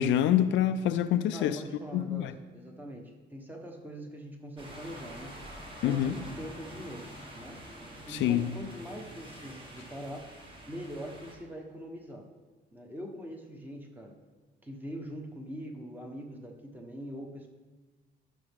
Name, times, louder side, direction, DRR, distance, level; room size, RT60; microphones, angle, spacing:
voice 1, 0.0-1.6 1.9-2.3 5.8-6.2 8.1-8.5, left 10 dB, 85° left, 11 dB, 0.5 m, -26 dB
voice 2, 1.3-2.3 2.5-3.0 3.3-5.3 5.8-7.1 7.3-7.6 8.1-10.3 10.7-12.2 12.7-14.1 14.6-17.5, equal, 10° right, 1 dB, 1.1 m, -43 dB
sound 1, 4.6-11.4, right 1 dB, 25° right, 1.6 m, -46 dB
13.5 x 6.0 x 3.6 m, 1.3 s
cardioid pair, 135°, 19 cm